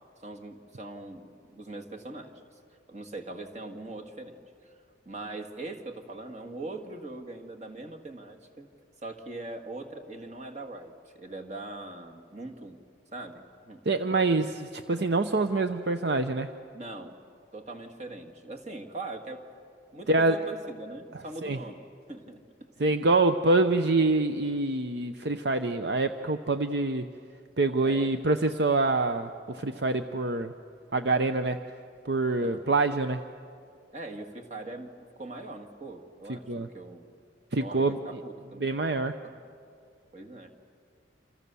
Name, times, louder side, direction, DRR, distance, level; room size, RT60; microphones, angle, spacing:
voice 1, 0.2-2.4 2.9-4.4 4.6-4.7 5.1-8.7 9.0-12.8 13.1-13.8 16.7-17.2 17.5-19.4 19.9-23.0 27.8-28.1 32.4-32.7 33.9-37.1 37.5-38.7 39.2-39.4 40.1-40.5, right 2 dB, 35° right, 4 dB, 2.0 m, -41 dB
voice 2, 13.9-16.5 20.1-20.4 21.4-21.6 22.8-27.1 27.6-30.5 30.9-31.6 32.0-33.2 36.3-36.7 37.5-38.0 38.6-39.2, right 2 dB, 60° right, 8 dB, 0.7 m, -26 dB
28.5 x 27.0 x 7.0 m, 2.3 s
head